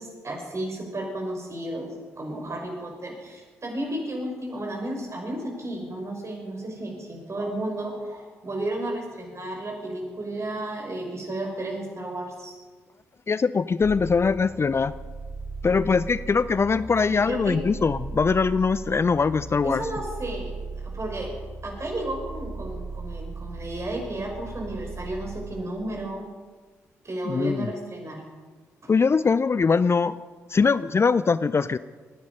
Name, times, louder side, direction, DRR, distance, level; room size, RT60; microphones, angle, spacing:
voice 1, 0.0-1.9 2.2-12.5 17.1-17.6 19.6-21.3 21.6-26.3 27.0-28.2 28.8-28.9, right 1 dB, 40° right, 1 dB, 5.8 m, -33 dB
voice 2, 13.3-14.9 15.6-19.8 27.3-27.7 28.9-30.2 30.5-31.8, left 5 dB, 35° left, 17 dB, 0.5 m, -22 dB
sound 1, 13.8-25.5, right 3 dB, 10° left, 4.3 m, -37 dB
25.0 x 10.5 x 5.5 m, 1.4 s
hypercardioid pair, 40°, 7 cm